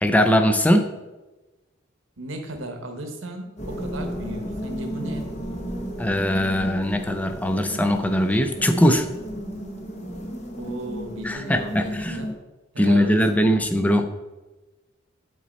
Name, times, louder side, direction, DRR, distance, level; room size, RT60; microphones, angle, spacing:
voice 1, 0.0-0.9 6.0-9.1 11.2-12.2 12.8-14.1, equal, 10° left, 7 dB, 0.4 m, -20 dB
voice 2, 2.2-5.3 10.6-12.3 12.7-13.6, right 1 dB, 75° right, 5 dB, 1.0 m, -36 dB
sound 1, 3.6-12.3, equal, 35° left, 0.9 m, -33 dB
7.5 x 4.1 x 4.2 m, 1.1 s
head